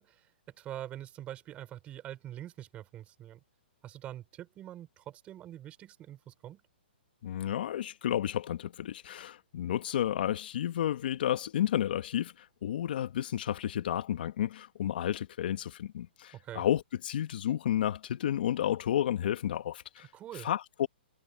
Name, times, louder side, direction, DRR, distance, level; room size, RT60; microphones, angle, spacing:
voice 1, 0.0-3.4 3.8-6.6 16.3-16.7 20.1-20.5, right 12 dB, 20° right, 5.5 m, -45 dB
voice 2, 7.2-20.1 20.4-20.9, left 11 dB, 60° left, 1.8 m, -31 dB
hypercardioid pair, 140°, 6 cm